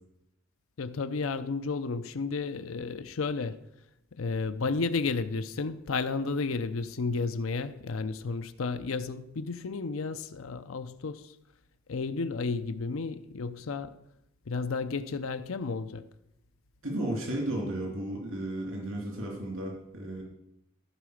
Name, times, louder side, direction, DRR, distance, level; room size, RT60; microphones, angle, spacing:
voice 1, 0.8-3.6 4.2-11.3 11.9-13.9 14.5-16.0, left 4 dB, 70° left, 0.6 m, -32 dB
voice 2, 16.8-20.2, right 1 dB, 70° right, 2.8 m, -34 dB
14.5 x 4.8 x 6.4 m
head